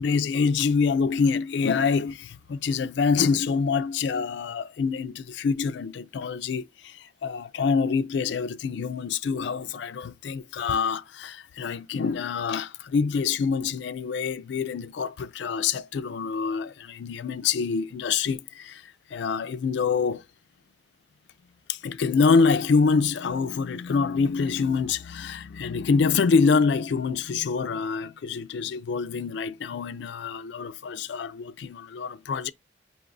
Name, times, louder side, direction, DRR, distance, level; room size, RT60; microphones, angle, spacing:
voice 1, 0.0-20.2 21.7-32.5, left 5 dB, 65° left, 0.4 m, -26 dB
5.4 x 2.3 x 3.8 m
head